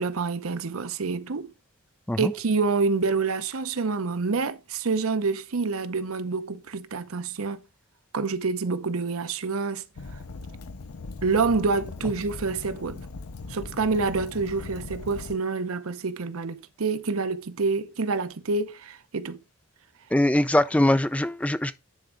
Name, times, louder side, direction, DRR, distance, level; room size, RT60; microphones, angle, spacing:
voice 1, 0.0-1.5 2.2-7.6 8.1-9.8 11.2-13.0 13.5-19.4, right 4 dB, 70° right, 0.7 m, -27 dB
Fire, 10.0-15.4, left 3 dB, 80° left, 0.7 m, -39 dB
voice 2, 20.1-21.7, left 1 dB, 5° left, 0.4 m, -22 dB
10.5 x 4.4 x 3.8 m
head